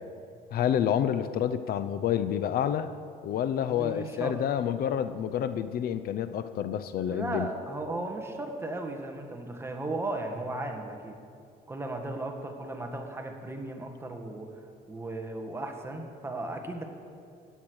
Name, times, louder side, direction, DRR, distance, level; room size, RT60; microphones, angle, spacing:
voice 1, 0.5-2.9 3.2-7.5, left 9 dB, 65° left, 12 dB, 0.6 m, -28 dB
voice 2, 3.5-4.4 7.0-11.2 11.7-16.8, right 2 dB, 15° right, 3 dB, 1.7 m, -36 dB
15.0 x 10.0 x 6.3 m, 2.4 s
cardioid pair, 110°, 17 cm